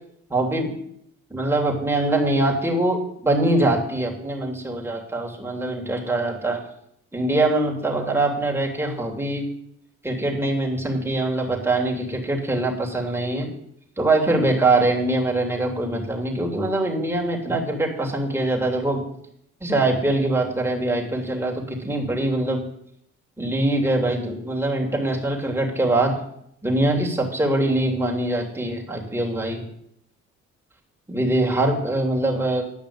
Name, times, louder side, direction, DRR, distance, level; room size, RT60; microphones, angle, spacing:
voice 1, 0.3-0.7 1.3-6.6 7.1-9.5 10.0-13.5 14.0-19.0 19.6-22.6 23.4-26.2 26.6-29.6 31.1-32.6, right 2 dB, 10° right, -1 dB, 2.8 m, -23 dB
10.5 x 5.6 x 8.6 m, 0.73 s
cardioid pair, 90°, 30 cm